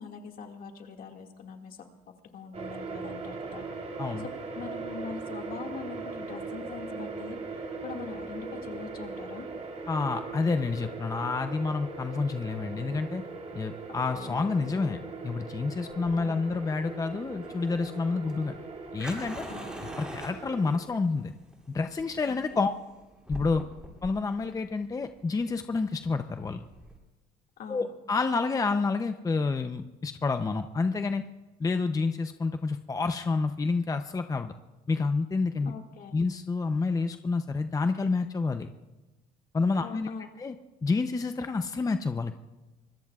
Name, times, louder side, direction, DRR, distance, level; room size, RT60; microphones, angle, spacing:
voice 1, 0.0-1.9 2.3-3.7 4.5-9.5 13.9-14.4 16.1-16.4 19.5-19.8 22.2-22.8 27.6-27.9 35.6-36.2 39.8-40.3, left 6 dB, 60° left, 3 dB, 2.1 m, -43 dB
sound 1, 2.5-20.8, right 3 dB, 40° right, 3.6 m, -39 dB
voice 2, 9.9-13.2 13.5-18.5 18.9-19.5 20.0-21.3 21.7-22.7 23.3-23.6 24.0-26.6 27.7-31.2 31.6-34.5 34.9-35.7 36.1-38.7 39.5-40.1 40.4-40.5 40.8-42.3, left 4 dB, 20° left, 7 dB, 0.7 m, -29 dB
Fire, 15.9-27.0, equal, 5° right, 7.5 m, -45 dB
25.5 x 21.0 x 2.4 m, 1.2 s
cardioid pair, 110°, 17 cm